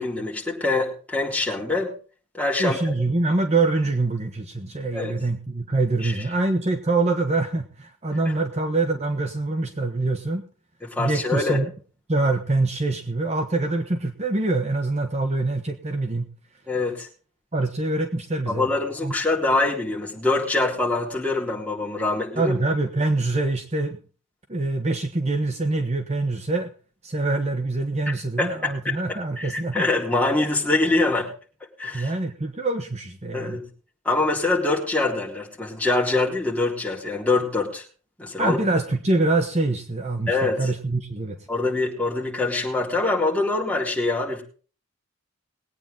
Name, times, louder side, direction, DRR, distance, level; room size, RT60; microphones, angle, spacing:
voice 1, 0.0-1.9 2.3-2.8 4.9-5.1 6.0-6.1 8.3-8.4 10.8-11.6 16.7-17.1 18.5-22.5 28.1-31.3 31.8-32.1 33.3-33.7 34.1-37.8 38.2-38.6 40.3-40.7 41.5-44.4, left 2 dB, 5° left, -3 dB, 3.7 m, -24 dB
voice 2, 2.6-10.4 11.0-11.7 12.1-16.3 17.5-18.7 19.0-19.1 22.4-24.0 24.5-26.7 27.0-29.9 31.9-33.6 38.4-41.4, right 2 dB, 35° right, 6 dB, 1.1 m, -24 dB
21.0 x 9.1 x 3.7 m, 0.39 s
head